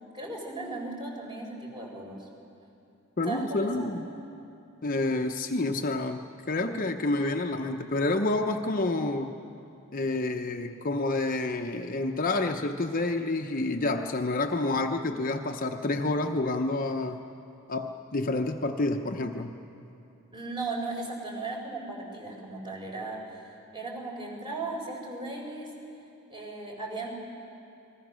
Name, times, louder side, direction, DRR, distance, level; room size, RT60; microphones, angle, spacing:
voice 1, 0.1-2.3 3.2-4.0 20.3-23.5 23.7-25.7 26.3-27.1, right 2 dB, 20° right, 0 dB, 4.4 m, -36 dB
voice 2, 3.2-4.1 4.8-9.3 9.9-17.2 17.7-19.6, left 2 dB, 40° left, 4 dB, 0.8 m, -29 dB
29.0 x 21.0 x 6.4 m, 2.8 s
head